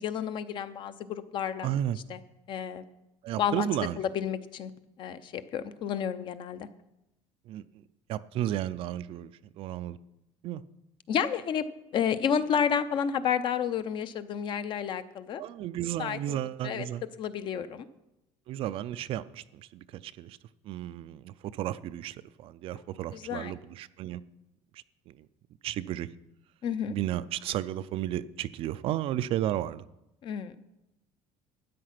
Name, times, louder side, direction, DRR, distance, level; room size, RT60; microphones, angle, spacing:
voice 1, 0.0-1.7 2.1-2.2 2.5-2.8 3.4-3.7 4.0-4.7 5.0-6.7 11.1-11.6 11.9-15.4 16.0-17.9 22.7-22.8 23.1-23.6 26.6-26.9 30.2-30.5, left 8 dB, 40° left, 12 dB, 0.6 m, -31 dB
voice 2, 1.6-2.0 3.2-4.0 7.5-7.6 8.1-9.3 9.6-10.0 10.4-10.6 15.4-17.0 18.5-20.4 20.7-24.2 25.6-26.1 26.9-29.8, right 12 dB, 50° right, 14 dB, 0.4 m, -33 dB
13.0 x 9.4 x 5.9 m, 0.91 s
cardioid pair, 165°, 12 cm